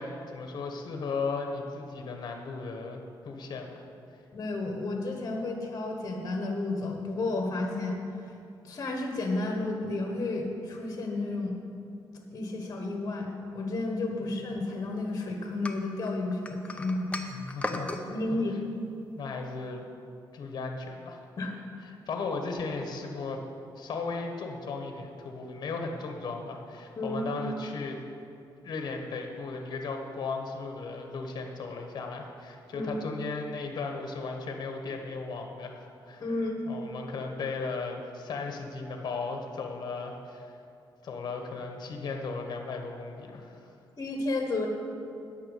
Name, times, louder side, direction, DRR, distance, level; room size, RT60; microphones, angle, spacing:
voice 1, 0.0-3.8 17.3-18.1 19.2-19.8 20.3-21.2 21.8-23.4 23.8-28.0 28.6-36.3 36.7-40.5 41.0-43.7, left 4 dB, 55° left, 3 dB, 1.1 m, -36 dB
voice 2, 4.3-8.0 8.6-11.6 12.3-17.3 17.6-17.8 18.1-18.5 21.4-21.5 27.0-27.3 32.7-33.0 36.2-36.6 44.0-44.7, left 2 dB, 40° left, 2 dB, 1.3 m, -32 dB
sound 1, 15.6-18.0, left 2 dB, 15° left, 0.7 m, -36 dB
9.4 x 5.7 x 8.3 m, 2.6 s
cardioid pair, 125°, 8 cm